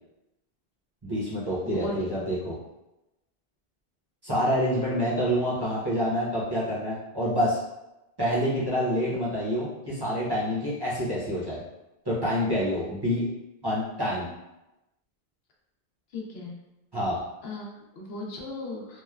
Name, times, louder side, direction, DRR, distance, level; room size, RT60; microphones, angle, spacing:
voice 1, 1.0-2.6 4.2-7.6 8.2-11.6 12.0-13.3 13.6-14.3 16.9-17.2, equal, 25° right, -9 dB, 0.7 m, -27 dB
voice 2, 1.6-2.0 16.1-16.5 17.4-19.0, left 2 dB, 80° left, -2 dB, 0.9 m, -36 dB
3.0 x 2.1 x 2.3 m, 0.95 s
omnidirectional pair, 1.0 m